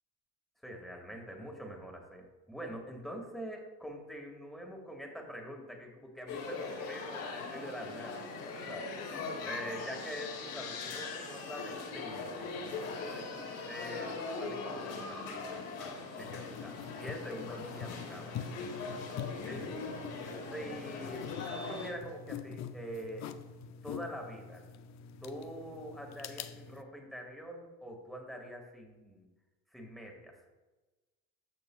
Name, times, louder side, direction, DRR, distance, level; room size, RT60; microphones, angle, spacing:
voice 1, 0.6-8.9 9.4-13.2 13.6-18.9 19.4-19.8 20.5-23.3 23.8-24.6 25.2-29.3 29.7-30.4, equal, ahead, 1 dB, 1.8 m, -45 dB
sound 1, 6.3-21.9, left 4 dB, 85° left, 2.1 m, -41 dB
sound 2, 16.2-26.8, left 8 dB, 55° left, 0.6 m, -45 dB
13.5 x 6.0 x 2.3 m, 1.2 s
cardioid pair, 105°, 32 cm